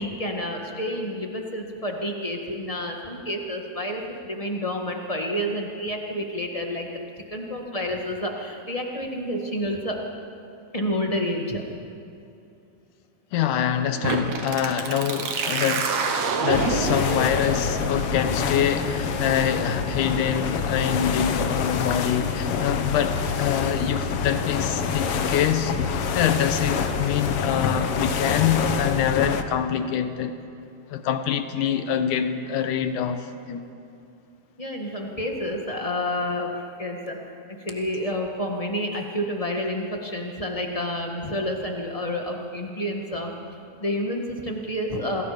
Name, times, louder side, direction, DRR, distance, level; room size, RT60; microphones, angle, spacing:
voice 1, 0.0-6.9 7.3-10.0 10.7-11.6 34.6-43.3 43.8-45.2, equal, 15° left, 1.2 m, -29 dB
voice 2, 13.3-25.7 26.1-30.3 30.9-33.6, left 9 dB, 75° left, 2.5 m, -25 dB
sound 1, 14.0-21.6, right 5 dB, 60° right, 2.5 m, -29 dB
sound 2, 16.5-29.4, left 6 dB, 60° left, 1.6 m, -26 dB
27.5 x 20.5 x 5.2 m
omnidirectional pair, 3.6 m